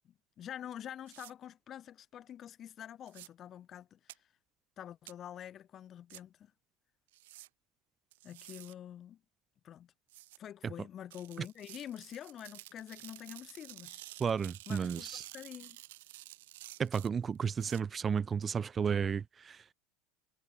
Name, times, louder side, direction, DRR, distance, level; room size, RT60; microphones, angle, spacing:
voice 1, 0.0-4.3 4.8-6.5 8.2-9.2 9.6-9.9 10.4-14.0 14.7-15.8, left 10 dB, 40° left, 1.4 m, -47 dB
sound 1, 1.1-1.3 3.1-3.3 4.1-4.2 5.1-5.2 6.1-6.2 7.1-7.5 8.1-8.7 10.1-10.4 11.1-17.8, right 18 dB, 80° right, 6.4 m, -51 dB
voice 2, 14.2-15.2 16.8-19.6, right 6 dB, 30° right, 0.4 m, -33 dB
hypercardioid pair, 100°, 0 cm